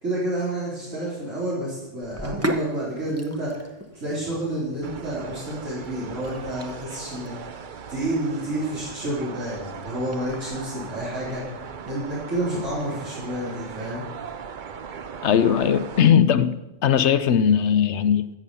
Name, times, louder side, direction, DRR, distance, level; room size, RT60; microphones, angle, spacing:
voice 1, 0.0-3.7 3.9-7.6 7.9-11.6 11.9-14.0, right 1 dB, 80° right, -8 dB, 4.3 m, -29 dB
Sink (filling or washing), 2.0-12.9, right 1 dB, 15° right, 0.8 m, -38 dB
sound 1, 4.8-16.1, right 6 dB, 50° right, 0.8 m, -39 dB
voice 2, 15.2-18.3, left 8 dB, 70° left, 13 dB, 0.9 m, -19 dB
15.0 x 7.1 x 6.9 m, 1.0 s
omnidirectional pair, 1.3 m